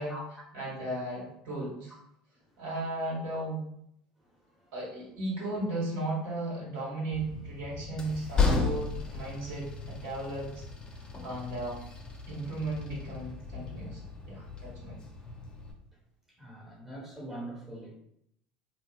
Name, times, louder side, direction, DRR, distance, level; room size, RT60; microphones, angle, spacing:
voice 1, 0.0-0.4 2.3-2.6 4.2-4.7 16.3-17.9, right 1 dB, 10° right, -5 dB, 1.2 m, -44 dB
voice 2, 0.5-1.9 2.6-3.6 4.7-10.6 10.9-11.8 12.3-14.0 14.3-15.0, right 2 dB, 60° right, -5 dB, 1.4 m, -35 dB
Train, 7.1-15.7, left 4 dB, 20° left, 0.6 m, -34 dB
2.8 x 2.7 x 2.4 m, 0.73 s
hypercardioid pair, 75°, 4 cm